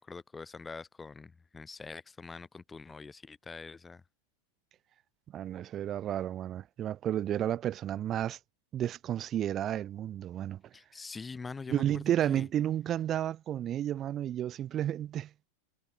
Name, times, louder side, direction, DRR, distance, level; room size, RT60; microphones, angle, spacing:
voice 1, 0.0-4.0 10.7-12.5, left 4 dB, 15° left, 2.9 m, -44 dB
voice 2, 5.3-8.4 8.7-10.6 11.7-15.3, right 11 dB, 35° right, 3.4 m, -32 dB
hypercardioid pair, 100°, 0 cm